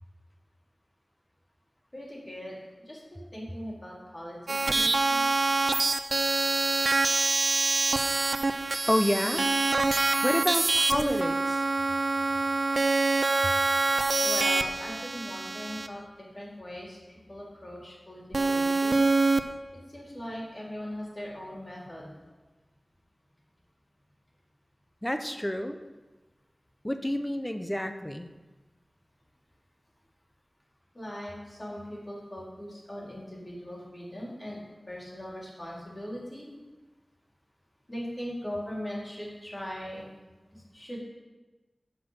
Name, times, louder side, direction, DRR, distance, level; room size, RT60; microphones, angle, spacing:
voice 1, 1.9-4.4 4.7-5.2 14.2-16.0 16.3-19.0 19.9-22.1 30.9-34.6 34.9-36.4 37.9-40.1 40.5-41.0, equal, 35° left, -4 dB, 3.9 m, -40 dB
sound 1, 4.5-15.9 18.3-19.4, right 3 dB, 70° right, 0.6 m, -25 dB
voice 2, 8.9-9.5 10.2-11.6 25.0-25.8 26.8-28.3, left 1 dB, 15° left, 7 dB, 0.8 m, -28 dB
15.5 x 5.6 x 5.7 m, 1.2 s
wide cardioid pair, 70°, 0 cm